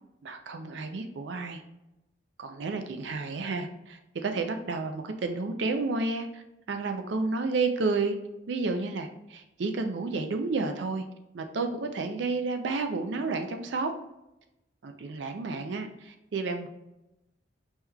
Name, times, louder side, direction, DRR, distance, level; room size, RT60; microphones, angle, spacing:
voice 1, 0.2-1.6 2.4-6.4 6.7-8.2 8.5-11.0 11.3-13.9 14.8-16.7, right 3 dB, 70° right, 6 dB, 0.4 m, -31 dB
5.4 x 3.0 x 2.3 m, 0.93 s
head